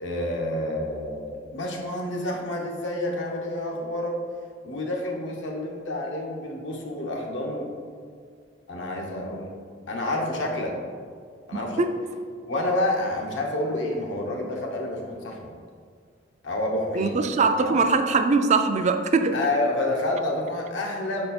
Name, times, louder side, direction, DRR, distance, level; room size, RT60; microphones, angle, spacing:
voice 1, 0.0-4.2 4.6-7.7 8.7-9.5 9.9-10.8 11.5-11.9 12.5-15.5 16.4-17.8 19.3-21.3, left 1 dB, 70° left, 0 dB, 1.0 m, -29 dB
voice 2, 11.5-11.9 16.9-19.4, right 4 dB, 35° right, 7 dB, 0.4 m, -22 dB
5.7 x 4.4 x 4.3 m, 2.1 s
head